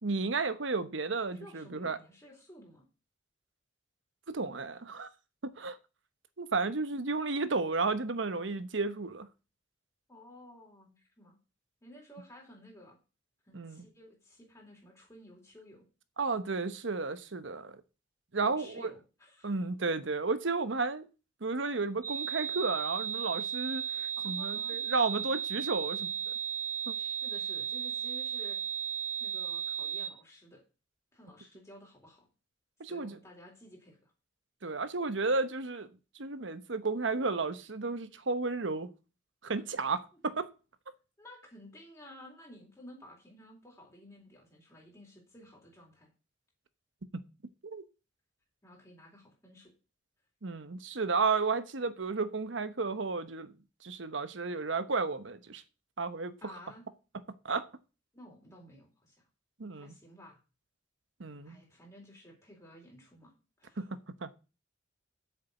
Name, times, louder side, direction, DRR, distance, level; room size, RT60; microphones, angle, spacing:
voice 1, 0.0-2.0 4.3-5.1 5.4-5.8 6.4-9.3 13.5-13.8 16.2-17.8 18.3-18.9 19.4-21.0 21.4-26.3 26.9-27.0 32.8-33.2 34.6-35.9 36.2-38.9 39.4-40.5 47.1-47.2 47.6-47.8 50.4-53.5 53.8-55.6 56.0-56.4 57.4-57.7 59.6-59.9 61.2-61.6 63.8-64.3, right 4 dB, 80° right, 1.0 m, -33 dB
voice 2, 1.3-2.8 10.1-11.4 11.8-13.0 13.4-15.9 18.4-19.6 24.2-24.8 26.9-28.6 29.2-30.6 31.1-32.3 32.8-34.1 41.2-46.1 48.6-49.7 56.4-56.9 58.1-59.2 59.7-60.4 61.4-63.3 63.6-63.8, left 1 dB, 15° left, 4.0 m, -53 dB
sound 1, 22.0-30.1, right 8 dB, 20° right, 2.0 m, -35 dB
8.3 x 6.9 x 8.1 m
head